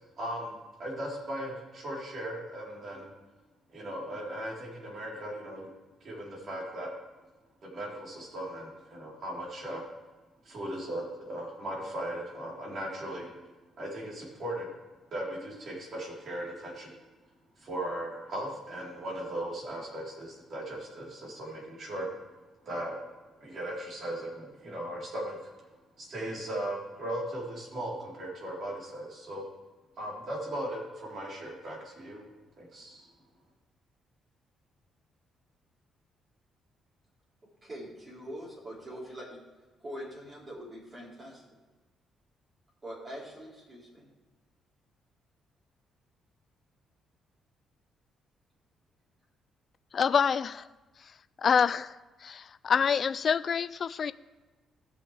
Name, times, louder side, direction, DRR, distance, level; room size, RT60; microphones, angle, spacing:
voice 1, 0.2-0.5 0.8-3.1 3.7-5.7 6.0-6.9 7.6-9.9 10.4-13.4 13.8-14.7 15.1-16.9 17.6-22.1 22.7-22.9 23.4-25.4 26.0-29.4 30.0-32.3 32.6-33.1, right 1 dB, 55° right, -4 dB, 3.8 m, -37 dB
voice 2, 37.6-39.4 39.8-41.4 42.8-44.1, equal, 35° right, -5 dB, 3.9 m, -43 dB
voice 3, 49.9-50.7 51.4-51.9 52.2-54.1, left 6 dB, 50° left, 15 dB, 0.3 m, -26 dB
17.5 x 6.2 x 3.4 m, 1.2 s
cardioid pair, 90°, 0 cm